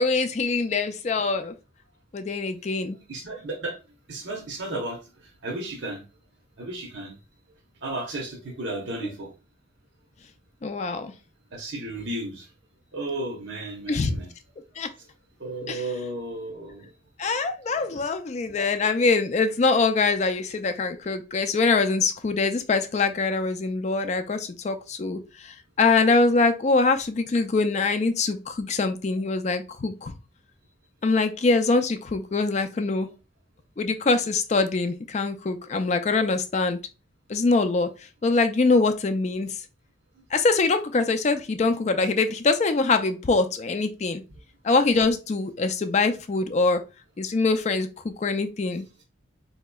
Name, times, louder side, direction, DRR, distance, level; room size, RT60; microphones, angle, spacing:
voice 1, 0.0-1.5 2.1-3.0 10.6-11.1 13.9-14.2 14.8-14.9 15.7-15.8 17.2-30.1 31.0-33.1 33.8-36.8 37.3-37.9 38.2-39.5 40.3-44.2 44.6-46.8 47.2-48.9, left 3 dB, 35° left, 0.3 m, -23 dB
voice 2, 3.1-3.8 4.1-6.0 6.6-7.2 7.8-9.3 11.5-12.5 12.9-14.3 15.0-15.1 15.4-16.9 17.8-17.9 29.1-29.2, right 2 dB, 70° right, 0.8 m, -34 dB
4.1 x 2.8 x 2.2 m
head